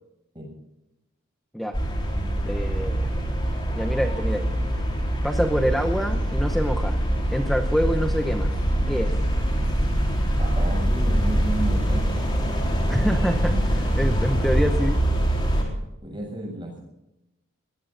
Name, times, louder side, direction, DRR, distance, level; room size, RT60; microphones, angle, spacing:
sound 1, 1.7-15.6, equal, 20° left, 4.1 m, -24 dB
voice 1, 2.4-3.1 3.7-4.5 5.2-7.0 7.3-8.5 8.9-9.1 12.9-15.0, equal, ahead, 4 dB, 0.8 m, -26 dB
voice 2, 10.4-12.1 16.0-16.8, right 1 dB, 20° right, 0 dB, 7.2 m, -32 dB
23.0 x 19.5 x 2.6 m, 0.93 s
head